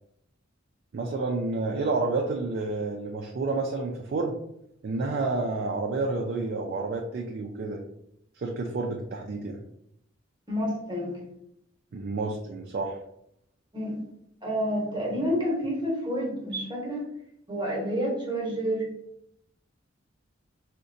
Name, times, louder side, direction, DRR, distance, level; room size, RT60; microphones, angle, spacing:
voice 1, 0.9-4.4 4.8-7.8 8.4-9.6 11.9-13.0, right 3 dB, 55° right, 1 dB, 0.4 m, -29 dB
voice 2, 10.5-11.2 13.7-14.0 14.4-17.1 17.5-18.9, equal, 25° right, -2 dB, 0.9 m, -29 dB
3.7 x 2.1 x 2.6 m, 0.74 s
head